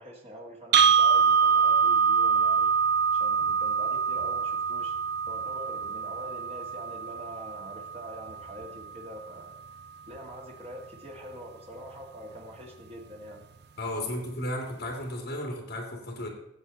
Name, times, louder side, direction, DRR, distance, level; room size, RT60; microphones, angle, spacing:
voice 1, 0.0-2.7 3.1-4.9 5.3-9.5 10.1-13.4, equal, 30° right, 0 dB, 1.7 m, -44 dB
sound 1, 0.7-8.8, right 6 dB, 55° right, 0.5 m, -25 dB
voice 2, 13.8-16.3, left 1 dB, 50° left, 1 dB, 2.7 m, -34 dB
13.5 x 8.0 x 4.1 m, 0.85 s
head